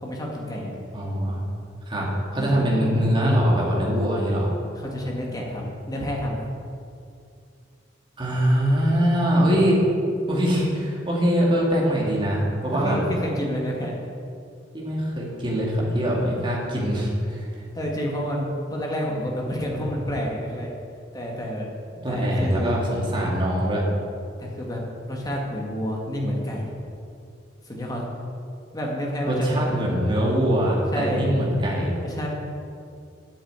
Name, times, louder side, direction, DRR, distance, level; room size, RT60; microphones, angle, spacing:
voice 1, 0.0-0.8 2.4-2.9 4.8-6.5 12.7-14.0 17.7-20.7 21.1-21.7 22.1-22.9 24.4-24.8 25.1-26.8 27.6-28.0 28.7-29.6 30.9-31.2 32.0-32.3, equal, 20° left, -2 dB, 2.1 m, -29 dB
voice 2, 0.9-1.4 1.9-4.5 8.2-9.8 10.3-13.0 14.7-17.7 22.0-23.8 29.3-32.0, equal, 25° right, -4 dB, 2.6 m, -23 dB
8.5 x 7.8 x 9.0 m, 2.4 s
head